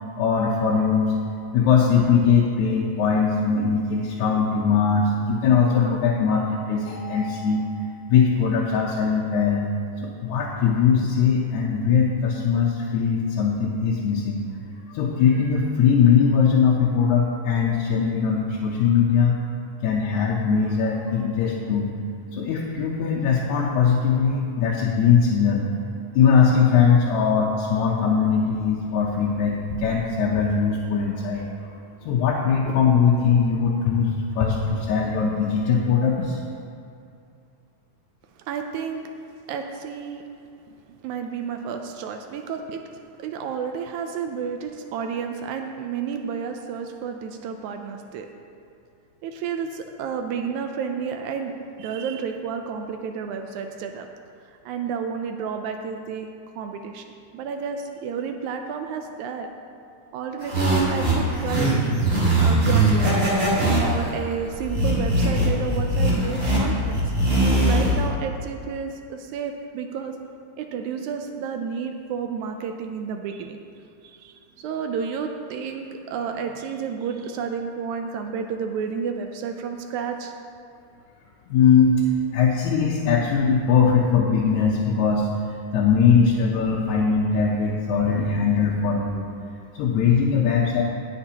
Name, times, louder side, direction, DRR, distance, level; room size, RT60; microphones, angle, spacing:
voice 1, 0.2-1.1 1.5-9.7 10.0-14.4 14.9-19.4 19.8-21.9 22.3-25.7 26.2-36.4 81.5-82.0 82.3-89.3 89.7-90.8, left 6 dB, 75° left, -3 dB, 2.1 m, -21 dB
voice 2, 38.5-39.0 39.5-40.2 41.0-42.8 43.2-48.3 49.2-51.5 51.8-54.1 54.7-56.3 56.6-57.0 57.3-59.5 60.1-61.7 62.4-63.2 63.8-67.0 67.6-70.1 70.6-73.6 74.2-80.3, right 6 dB, 80° right, 5 dB, 2.0 m, -31 dB
sound 1, 60.4-68.1, right 1 dB, 30° right, 3.0 m, -21 dB
19.5 x 6.8 x 2.9 m, 2.5 s
omnidirectional pair, 3.5 m